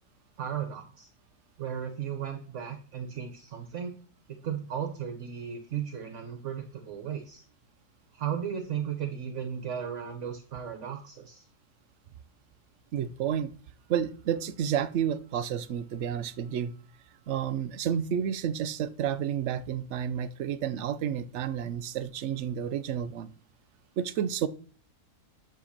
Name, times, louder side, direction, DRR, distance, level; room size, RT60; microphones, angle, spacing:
voice 1, 0.4-1.1 1.6-4.0 4.4-7.4 8.1-11.5, right 8 dB, 50° right, 1.1 m, -35 dB
voice 2, 12.9-13.5 13.9-16.7 17.3-23.3 24.0-24.5, right 9 dB, 80° right, 0.6 m, -30 dB
10.0 x 3.4 x 6.4 m
omnidirectional pair, 1.8 m